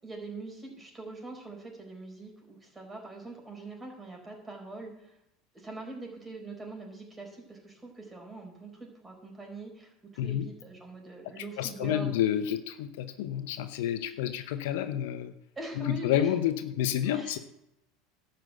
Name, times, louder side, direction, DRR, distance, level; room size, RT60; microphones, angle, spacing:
voice 1, 0.0-5.2 5.5-12.1 15.5-16.3 17.0-17.4, right 2 dB, 15° right, 1 dB, 4.5 m, -43 dB
voice 2, 11.6-15.3 15.8-17.4, left 11 dB, 70° left, 10 dB, 0.8 m, -29 dB
12.0 x 6.1 x 7.9 m, 0.84 s
hypercardioid pair, 85°, 0 cm